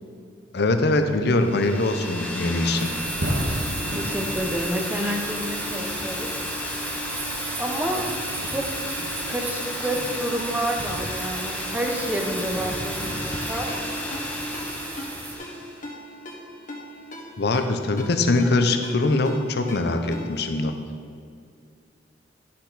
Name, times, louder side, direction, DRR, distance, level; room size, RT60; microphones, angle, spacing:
voice 1, 0.5-2.9 17.4-20.7, left 2 dB, 65° left, 7 dB, 0.6 m, -22 dB
sound 1, 1.3-15.8, left 1 dB, 10° left, 1.1 m, -33 dB
sound 2, 2.8-15.3, right 2 dB, 70° right, 1.4 m, -33 dB
voice 2, 3.9-6.3 7.6-8.1 8.4-8.6 8.9-13.7 14.4-14.6, equal, 10° right, 1 dB, 0.8 m, -29 dB
Ringtone, 13.7-20.5, left 1 dB, 50° left, 1.4 m, -40 dB
10.5 x 6.4 x 4.1 m, 2.3 s
head